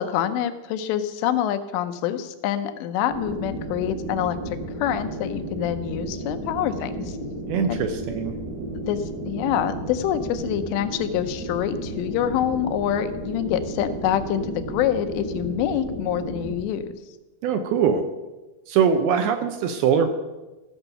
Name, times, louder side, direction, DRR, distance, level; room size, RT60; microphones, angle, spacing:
voice 1, 0.0-7.2 7.7-7.9 8.9-17.0, left 10 dB, 85° left, 10 dB, 3.0 m, -26 dB
sound 1, 3.0-16.5, right 1 dB, 65° right, 6.8 m, -33 dB
voice 2, 7.5-8.3 17.4-18.1 18.7-20.1, right 7 dB, 80° right, 7 dB, 2.3 m, -22 dB
15.0 x 7.0 x 5.5 m, 1.1 s
omnidirectional pair, 5.0 m